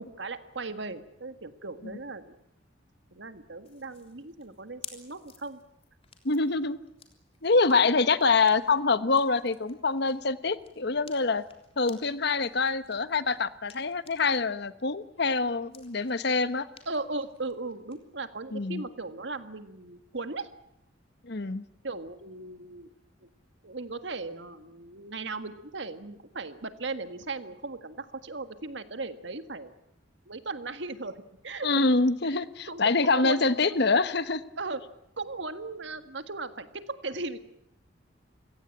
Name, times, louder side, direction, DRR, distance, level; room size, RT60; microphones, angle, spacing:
voice 1, 0.0-2.3 3.1-5.6 16.8-20.5 21.8-22.9 23.2-23.3 23.6-29.7 30.3-31.8 32.2-32.3 32.7-33.4 33.7-33.8 34.6-34.8 35.2-37.4, right 3 dB, 70° right, 9 dB, 1.8 m, -37 dB
sound 1, 3.6-14.4 14.8-18.0, left 7 dB, 30° left, 3.5 m, -54 dB
voice 2, 6.2-6.8 7.4-11.4 11.8-16.7 18.5-18.8 21.2-21.6 31.6-34.4, left 3 dB, 60° left, 13 dB, 1.1 m, -25 dB
28.5 x 17.5 x 8.9 m, 0.82 s
head